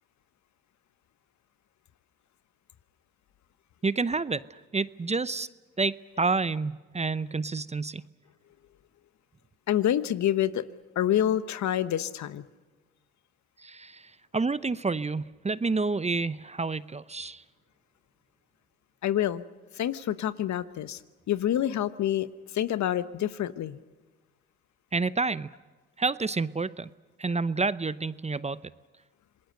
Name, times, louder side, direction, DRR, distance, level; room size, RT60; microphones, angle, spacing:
voice 1, 3.8-5.5 5.8-8.0 13.6-17.4 24.9-25.5 26.0-26.9 27.2-28.6, right 4 dB, 20° right, 0.8 m, -29 dB
voice 2, 9.7-10.6 11.0-12.4 19.0-19.4 19.8-21.0 21.3-22.3 22.5-23.8, left 11 dB, 60° left, 1.0 m, -27 dB
27.0 x 20.5 x 6.7 m
hypercardioid pair, 55°, 32 cm